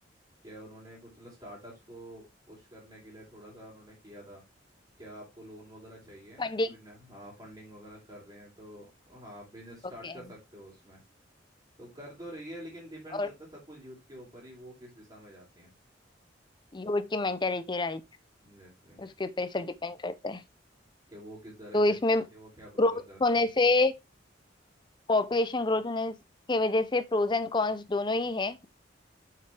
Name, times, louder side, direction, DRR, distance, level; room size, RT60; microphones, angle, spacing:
voice 1, 0.4-4.4 5.0-11.0 11.8-15.7 18.4-19.0 21.1-23.5, equal, 20° right, 3.3 m, -48 dB
voice 2, 6.4-6.8 10.0-10.1 13.1-13.3 16.7-18.0 19.0-20.4 21.7-22.2 22.8-23.9 25.1-26.1 26.5-28.7, left 2 dB, 25° left, 0.6 m, -27 dB
6.7 x 6.4 x 3.3 m
head